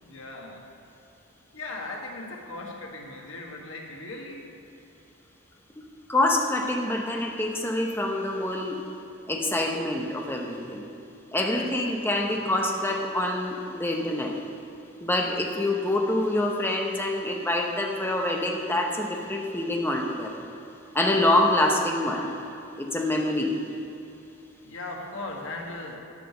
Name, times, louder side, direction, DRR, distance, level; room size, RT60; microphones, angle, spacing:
voice 1, 0.0-0.7 1.5-4.5 11.4-11.7 12.2-12.5 24.6-26.0, left 2 dB, 90° left, 0 dB, 1.5 m, -38 dB
voice 2, 6.1-8.8 9.3-10.8 11.3-14.4 15.0-20.5 20.9-22.3 22.8-23.6, left 1 dB, 10° left, 1 dB, 0.9 m, -26 dB
11.5 x 5.0 x 6.9 m, 2.8 s
head